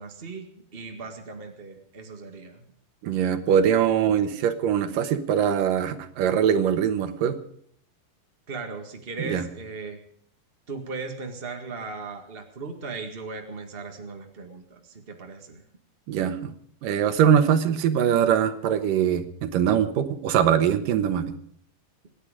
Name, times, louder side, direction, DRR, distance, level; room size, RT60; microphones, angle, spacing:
voice 1, 0.0-2.6 8.5-10.0 10.7-15.6, right 4 dB, 45° right, 3 dB, 0.7 m, -37 dB
voice 2, 3.0-7.4 9.2-9.4 16.1-16.5 16.8-21.3, right 8 dB, 65° right, 10 dB, 2.7 m, -22 dB
27.0 x 10.0 x 5.1 m, 0.63 s
omnidirectional pair, 4.5 m